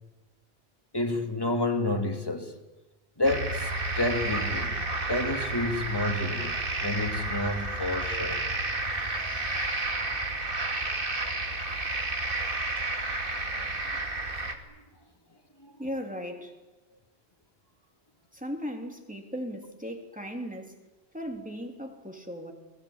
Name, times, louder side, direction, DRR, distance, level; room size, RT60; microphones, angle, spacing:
voice 1, 0.9-2.5 3.2-8.4 15.6-15.7, left 2 dB, 20° left, 2.5 m, -30 dB
sound 1, 3.2-14.5, right 2 dB, 50° right, 2.5 m, -31 dB
voice 2, 15.8-16.5 18.3-20.8 21.1-22.5, equal, 5° right, 3.1 m, -37 dB
30.0 x 21.0 x 8.8 m
omnidirectional pair, 1.2 m